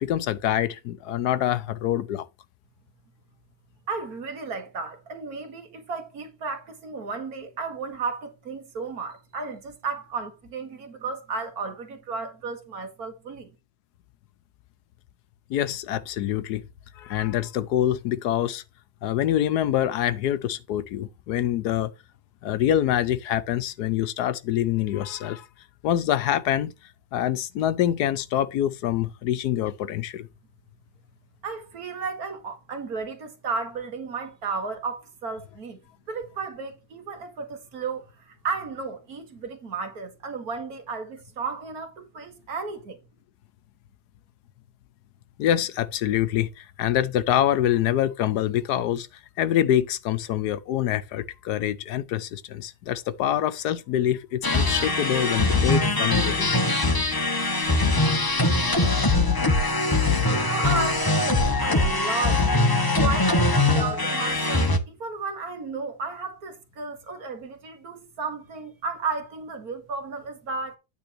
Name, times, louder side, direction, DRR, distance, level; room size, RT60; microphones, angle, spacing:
voice 1, 0.0-2.3 15.5-16.6 17.0-18.6 19.0-21.9 22.4-25.5 25.8-26.7 27.1-30.3 45.4-49.1 49.4-56.6, left 11 dB, 80° left, 1.3 m, -25 dB
voice 2, 3.9-13.5 31.4-35.8 36.1-43.0 60.3-62.5 62.9-70.8, right 4 dB, 65° right, 1.9 m, -33 dB
sound 1, 54.4-64.8, left 2 dB, 20° left, 0.8 m, -22 dB
9.3 x 3.8 x 5.8 m
omnidirectional pair, 1.7 m